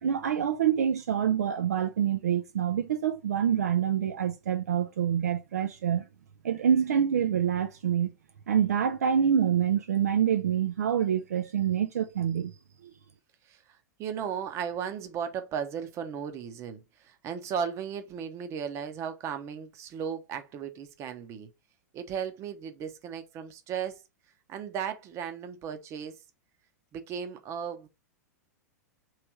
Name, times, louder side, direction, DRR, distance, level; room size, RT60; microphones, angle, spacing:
voice 1, 0.0-6.1 6.4-8.1 8.5-12.5, right 8 dB, 65° right, 0.4 m, -26 dB
voice 2, 14.0-21.5 21.9-24.0 24.5-26.2 26.9-27.9, right 7 dB, 30° right, 0.8 m, -36 dB
3.4 x 3.2 x 4.4 m
figure-of-eight pair, 100°, 9 cm